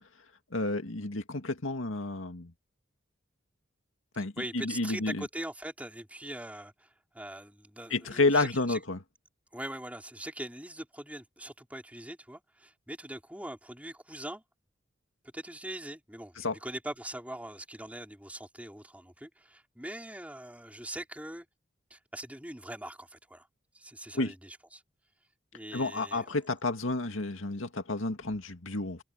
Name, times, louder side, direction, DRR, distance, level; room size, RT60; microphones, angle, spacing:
voice 1, 0.5-2.5 4.2-5.2 7.9-9.0 16.4-16.6 24.1-24.3 25.7-29.0, left 2 dB, 90° left, 2.2 m, -30 dB
voice 2, 4.4-8.8 9.5-14.4 15.3-21.5 21.9-23.5 23.7-24.8 25.5-26.3, right 1 dB, 5° right, 5.2 m, -42 dB
head